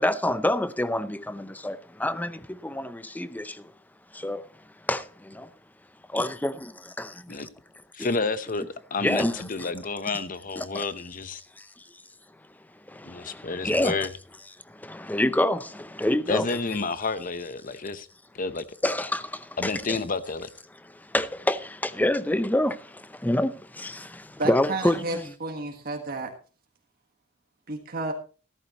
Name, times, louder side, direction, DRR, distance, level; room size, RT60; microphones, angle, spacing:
voice 1, 0.0-3.7 4.1-4.5 4.9-5.5 6.1-7.5 8.0-8.1 9.0-9.7 10.6-10.9 11.6-11.7 12.9-14.1 14.7-16.6 18.8-20.0 20.8-25.3, left 1 dB, 10° left, 0.6 m, -28 dB
voice 2, 7.9-8.6 8.9-11.4 13.0-14.1 16.3-18.1 18.3-18.6 19.6-20.5, left 4 dB, 45° left, 0.9 m, -30 dB
voice 3, 24.4-26.3 27.7-28.1, right 2 dB, 50° right, 1.6 m, -31 dB
14.5 x 13.5 x 3.0 m
head